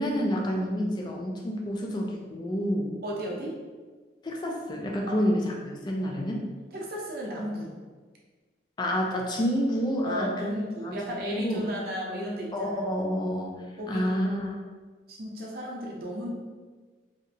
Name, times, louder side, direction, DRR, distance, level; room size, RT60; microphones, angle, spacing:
voice 1, 0.0-2.9 4.2-6.4 8.8-10.5 10.8-11.0 11.3-11.6 12.5-14.6, equal, 25° left, 0 dB, 0.3 m, -29 dB
voice 2, 3.0-3.6 5.1-5.2 6.7-7.8 10.0-12.8 13.8-14.3 15.1-16.3, equal, 55° right, -3 dB, 0.5 m, -34 dB
2.8 x 2.1 x 2.5 m, 1.4 s
head